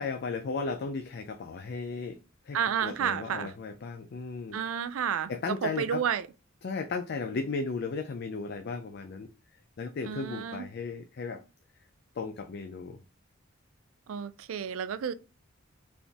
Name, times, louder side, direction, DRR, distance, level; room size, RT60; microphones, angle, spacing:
voice 1, 0.0-2.2 2.5-4.6 5.3-6.0 6.6-9.3 9.8-11.4 12.2-13.0, left 4 dB, 55° left, 0.4 m, -35 dB
voice 2, 2.5-3.5 4.5-6.3 10.1-10.6 14.1-15.1, right 8 dB, 90° right, 0.4 m, -31 dB
4.1 x 3.5 x 2.9 m
head